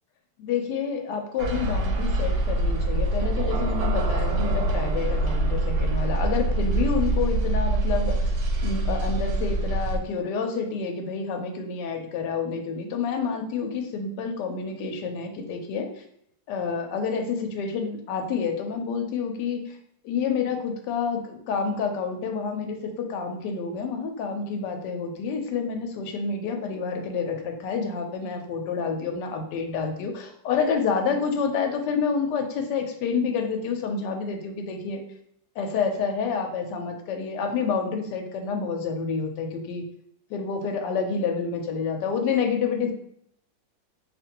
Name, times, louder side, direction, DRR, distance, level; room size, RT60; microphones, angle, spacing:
voice 1, 0.4-8.3 8.6-15.9 16.5-19.8 20.0-35.0 35.6-39.8 40.3-42.9, left 5 dB, 75° left, 4 dB, 1.2 m, -28 dB
sound 1, 1.4-10.0, right 2 dB, 75° right, 1.1 m, -24 dB
4.6 x 2.5 x 2.8 m, 0.73 s
omnidirectional pair, 2.0 m